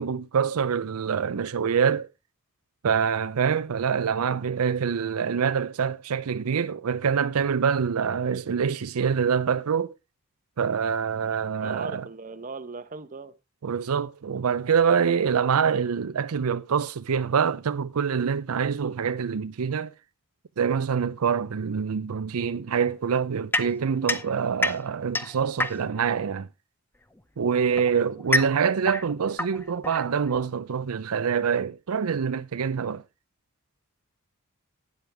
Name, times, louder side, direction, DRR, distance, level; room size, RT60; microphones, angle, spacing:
voice 1, 0.0-2.1 2.8-9.9 10.6-12.0 13.6-19.9 20.6-26.5 27.4-33.0, right 6 dB, 85° right, 0.5 m, -25 dB
voice 2, 11.6-13.3 27.7-27.9 28.4-28.5, right 4 dB, 40° right, 0.9 m, -38 dB
sound 1, 23.5-26.1 27.1-30.5, left 2 dB, 10° left, 0.6 m, -29 dB
12.0 x 9.5 x 3.3 m
head